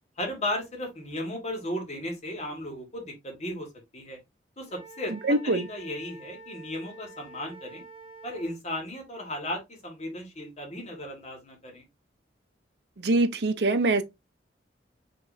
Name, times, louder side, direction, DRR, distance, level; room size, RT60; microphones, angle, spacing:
voice 1, 0.2-3.7 3.9-4.2 4.6-7.8 8.2-11.8, left 1 dB, 35° left, 1.7 m, -35 dB
Wind instrument woodwind instrument, 4.7-8.6, right 2 dB, 30° right, 2.0 m, -48 dB
voice 2, 5.3-5.6 13.0-14.0, right 2 dB, 60° right, 0.6 m, -23 dB
5.1 x 3.1 x 2.7 m
head